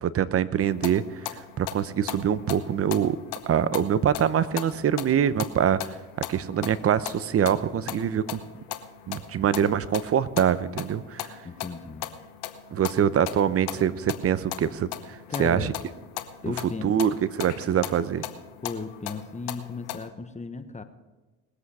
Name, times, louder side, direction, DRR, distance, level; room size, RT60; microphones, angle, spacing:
voice 1, 0.0-3.2 3.5-8.4 9.1-11.4 12.7-15.7 16.8-18.2, right 9 dB, 45° right, 15 dB, 0.8 m, -24 dB
sound 1, 0.6-20.1, left 12 dB, 85° left, 1.2 m, -39 dB
voice 2, 11.4-12.1 15.3-15.7 16.4-16.9 18.6-20.8, left 4 dB, 20° left, 9 dB, 1.1 m, -35 dB
20.0 x 8.3 x 4.9 m, 1.2 s
supercardioid pair, 90°, 33 cm